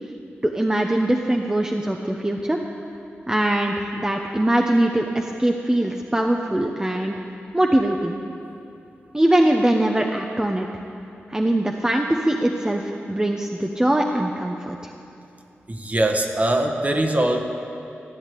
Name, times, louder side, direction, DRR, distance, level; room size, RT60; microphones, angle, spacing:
voice 1, 0.4-2.6 3.3-7.2 7.5-8.2 9.1-10.7 11.3-14.9, right 1 dB, 15° right, 2 dB, 0.9 m, -22 dB
voice 2, 15.7-17.4, right 1 dB, 35° right, 4 dB, 1.5 m, -21 dB
14.0 x 8.7 x 8.5 m, 2.7 s
cardioid pair, 50°, 4 cm